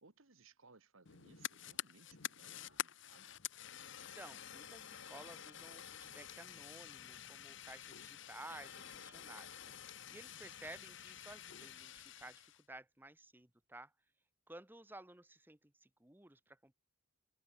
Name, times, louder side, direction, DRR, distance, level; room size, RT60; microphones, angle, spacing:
voice 1, 0.0-3.3, right 3 dB, 70° right, 1.8 m, -65 dB
Fire, 1.1-12.6, left 10 dB, 55° left, 1.0 m, -49 dB
voice 2, 4.1-13.9 14.5-16.7, right 2 dB, 10° right, 1.0 m, -55 dB
sound 1, 5.4-12.4, left 1 dB, 35° left, 6.7 m, -77 dB
sound 2, 8.5-11.3 11.8-11.9, right 2 dB, 35° right, 4.4 m, -73 dB
head